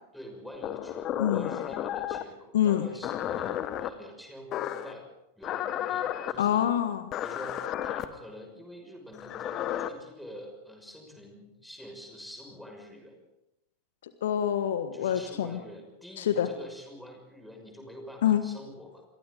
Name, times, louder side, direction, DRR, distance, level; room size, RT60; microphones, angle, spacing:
voice 1, 0.1-5.1 5.4-6.7 7.2-13.2 14.9-19.1, equal, ahead, 2 dB, 6.2 m, -46 dB
sound 1, 0.6-2.3 3.0-3.9 4.5-4.9 5.4-6.4 7.1-8.1 9.1-9.9, left 11 dB, 35° left, 1.3 m, -32 dB
voice 2, 2.5-2.9 6.4-7.0 14.0-15.6 16.2-16.5 18.2-18.4, left 10 dB, 60° left, 10 dB, 1.4 m, -26 dB
29.5 x 22.5 x 3.9 m, 0.89 s
figure-of-eight pair, 90°, 0 cm